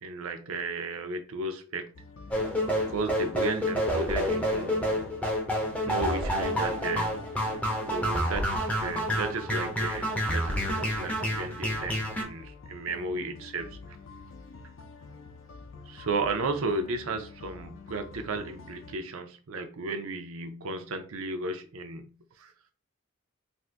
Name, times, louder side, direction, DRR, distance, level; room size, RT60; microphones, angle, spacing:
voice 1, 0.0-1.9 2.8-5.0 5.9-7.3 7.9-13.7 15.9-22.1 22.4-22.5, right 3 dB, 75° right, 0.5 m, -34 dB
sound 1, 1.9-19.0, left 4 dB, 70° left, 0.5 m, -47 dB
sound 2, 2.3-12.2, equal, 5° left, 0.5 m, -29 dB
2.6 x 2.6 x 3.3 m
head